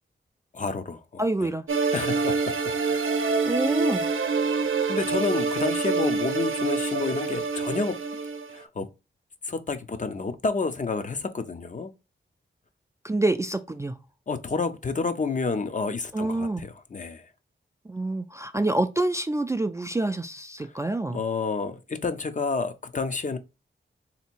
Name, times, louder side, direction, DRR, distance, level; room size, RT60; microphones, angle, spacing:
voice 1, 0.5-1.5 1.9-3.3 4.9-8.0 8.5-8.9 9.4-11.9 14.3-17.3 20.6-20.7 21.1-23.4, left 4 dB, 40° left, 0.6 m, -30 dB
voice 2, 1.2-1.6 3.4-4.1 13.0-13.9 16.1-16.6 17.9-21.2, right 2 dB, 15° right, 0.3 m, -27 dB
sound 1, 1.7-8.6, right 4 dB, 85° right, 0.6 m, -26 dB
3.3 x 2.8 x 4.4 m
wide cardioid pair, 85°, 20 cm